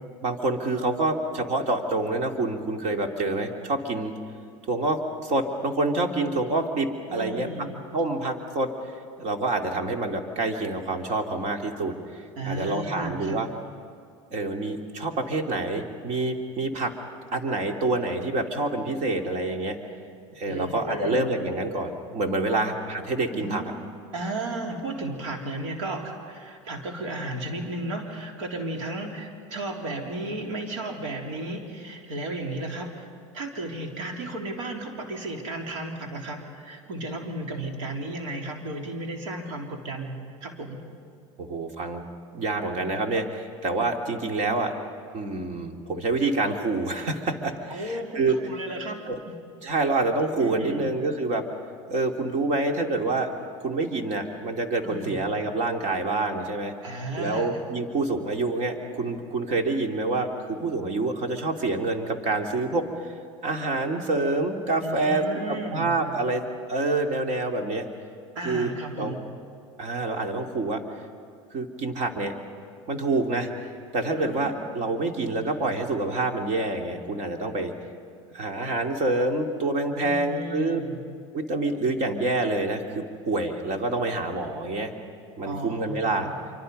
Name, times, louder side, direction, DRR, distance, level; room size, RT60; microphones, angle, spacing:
voice 1, 0.2-4.1 4.7-7.5 7.9-8.7 9.2-13.5 14.3-16.9 17.3-19.8 20.3-23.6 41.4-42.0 42.3-44.7 45.1-48.4 49.1-49.2 49.6-51.4 51.9-53.3 53.6-56.7 57.2-62.8 63.4-66.4 66.7-67.9 68.4-69.1 69.8-70.8 71.5-72.3 72.9-77.7 78.3-80.8 81.3-84.9 85.4-86.3, right 2 dB, 45° right, 3 dB, 2.9 m, -27 dB
voice 2, 7.1-7.8 12.4-13.4 20.4-21.3 22.5-22.6 23.3-23.7 24.1-40.8 47.7-49.3 50.4-50.9 54.8-55.2 56.8-57.5 64.8-66.0 68.3-69.2 74.2-74.6 80.0-81.0 85.4-86.4, right 2 dB, 80° right, 1 dB, 3.7 m, -34 dB
26.5 x 25.0 x 5.4 m, 2.3 s
hypercardioid pair, 95°, 16 cm